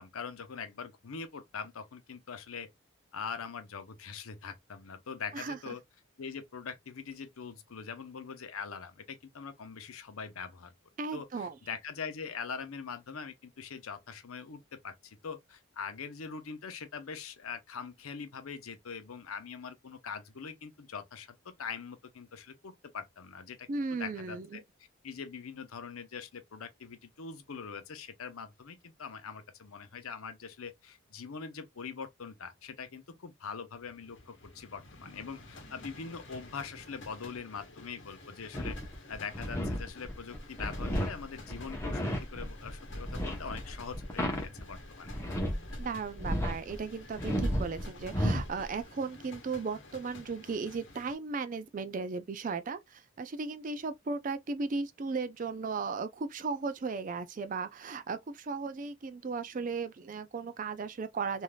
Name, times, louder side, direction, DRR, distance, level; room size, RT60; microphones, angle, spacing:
voice 1, 0.0-2.7 3.1-5.8 6.2-10.7 11.1-24.6 25.0-38.8 39.1-42.0 42.3-45.1, left 6 dB, 90° left, 0.7 m, -43 dB
voice 2, 11.0-11.6 23.7-24.6 45.8-61.4, right 4 dB, 40° right, 0.4 m, -36 dB
sound 1, 33.7-51.2, left 2 dB, 60° left, 1.0 m, -51 dB
sound 2, 38.5-45.8 46.1-46.8 47.2-48.6, equal, 10° left, 0.7 m, -33 dB
3.3 x 2.6 x 2.2 m
head